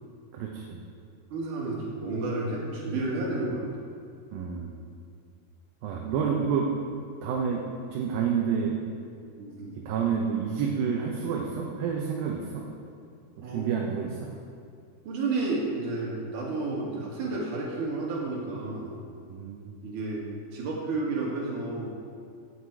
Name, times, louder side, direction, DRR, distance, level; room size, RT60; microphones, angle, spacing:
voice 1, 0.3-0.8 4.3-4.7 5.8-6.7 7.2-8.8 9.7-12.7 13.4-14.3 19.3-19.7, right 6 dB, 70° right, 0 dB, 2.5 m, -29 dB
voice 2, 1.3-3.6 9.4-9.8 13.4-13.9 15.1-19.0 19.8-21.9, right 3 dB, 55° right, -3 dB, 3.5 m, -31 dB
16.0 x 8.8 x 4.8 m, 2.3 s
omnidirectional pair, 4.7 m